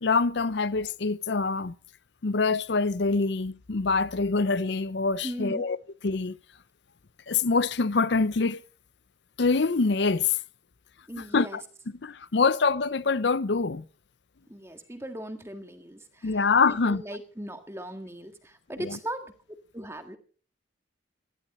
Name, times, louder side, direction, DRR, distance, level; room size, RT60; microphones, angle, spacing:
voice 1, 0.0-1.8 2.2-5.8 6.0-6.4 7.3-8.6 9.4-10.4 11.3-11.6 12.0-13.8 16.2-17.0 18.8-19.0, left 4 dB, 60° left, 0.6 m, -25 dB
voice 2, 5.2-5.7 11.1-11.6 14.5-19.3 19.7-20.2, right 1 dB, 15° right, 1.7 m, -38 dB
18.0 x 14.5 x 4.3 m
head